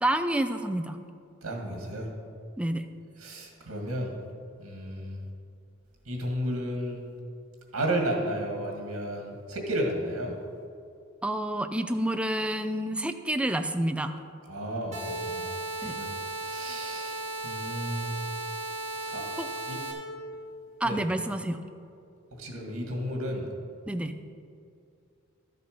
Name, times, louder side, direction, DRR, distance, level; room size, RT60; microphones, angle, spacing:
voice 1, 0.0-1.0 2.6-2.9 11.2-14.2 15.8-16.0 19.4-19.5 20.8-21.6 23.9-24.2, right 1 dB, 5° right, 8 dB, 0.4 m, -29 dB
voice 2, 1.4-2.1 3.2-4.1 4.6-5.2 6.1-7.0 7.7-10.3 14.5-15.5 15.8-16.1 16.4-18.2 19.1-19.3 19.7-19.8 20.8-21.0 22.4-23.5, right 1 dB, 85° right, 1 dB, 1.9 m, -32 dB
sound 1, 14.9-19.9, right 2 dB, 30° right, 1.9 m, -35 dB
12.5 x 6.8 x 5.1 m, 2.4 s
head